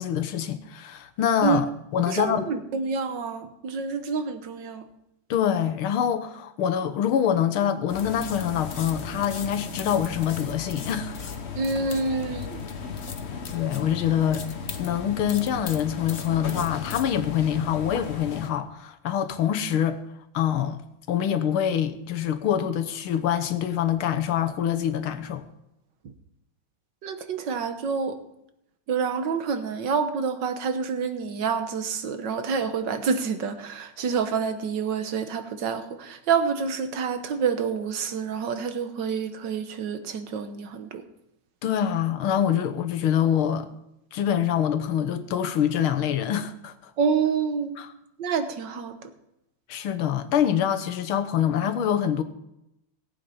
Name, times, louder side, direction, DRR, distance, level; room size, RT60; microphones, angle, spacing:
voice 1, 0.0-1.7 1.9-2.5 5.3-11.3 13.5-14.4 14.8-20.0 20.3-20.8 21.1-25.4 41.6-43.7 44.1-46.9 47.8-47.9 49.7-52.2, left 9 dB, 85° left, 1.9 m, -25 dB
voice 2, 2.1-4.9 11.6-12.6 26.0-26.1 27.0-28.2 28.9-41.0 47.0-47.8 48.2-49.1, right 5 dB, 65° right, 1.6 m, -28 dB
sound 1, 7.9-18.5, left 6 dB, 40° left, 1.0 m, -35 dB
18.0 x 8.5 x 5.6 m
omnidirectional pair, 2.3 m